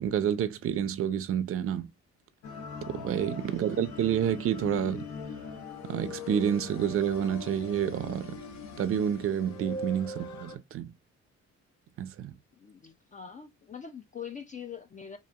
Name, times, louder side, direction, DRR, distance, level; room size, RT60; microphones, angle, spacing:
voice 1, 0.0-1.9 2.9-5.1 5.8-8.4 8.8-10.9 12.0-12.3, right 9 dB, 50° right, 0.5 m, -29 dB
sound 1, 2.4-10.6, left 4 dB, 65° left, 0.7 m, -41 dB
voice 2, 3.4-3.7 12.5-15.2, left 7 dB, 25° left, 0.4 m, -43 dB
2.8 x 2.5 x 2.3 m
cardioid pair, 90°, 30 cm